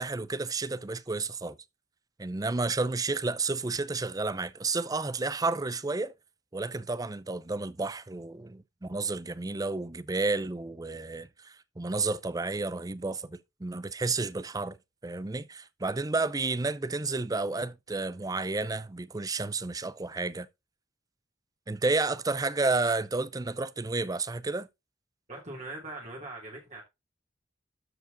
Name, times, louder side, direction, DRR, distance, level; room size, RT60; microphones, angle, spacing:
voice 1, 0.0-1.6 2.2-6.1 6.5-14.8 15.0-20.5 21.7-24.7, right 3 dB, 20° right, 0.5 m, -31 dB
voice 2, 25.3-26.8, right 2 dB, 40° right, 2.8 m, -41 dB
12.5 x 4.9 x 3.9 m
head